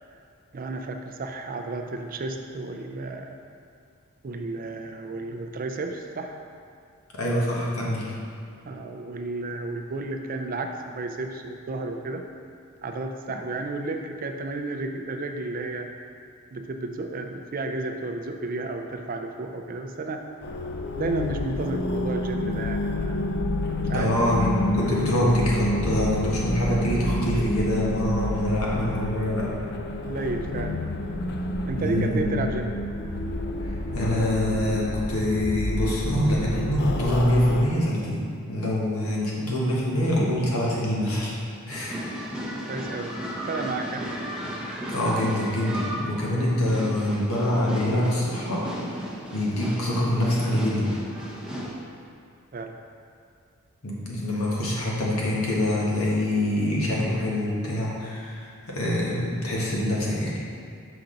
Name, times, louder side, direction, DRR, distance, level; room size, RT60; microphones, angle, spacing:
voice 1, 0.5-3.4 4.2-6.4 8.6-12.2 12.8-15.9 16.5-20.3 21.0-23.2 23.9-24.2 30.0-30.8 31.7-32.7 42.7-43.1 43.4-44.1 52.5-52.8, right 3 dB, 40° right, 5 dB, 0.4 m, -32 dB
voice 2, 7.1-8.1 23.9-29.6 31.8-32.2 33.9-41.4 41.6-42.0 44.9-49.1 49.3-50.9 53.8-60.3, left 1 dB, 85° left, -5 dB, 1.4 m, -25 dB
sound 1, 20.4-37.7, left 1 dB, 50° left, 0.4 m, -29 dB
sound 2, 41.7-51.7, equal, 5° right, 0.6 m, -34 dB
5.9 x 5.0 x 3.9 m, 2.3 s
head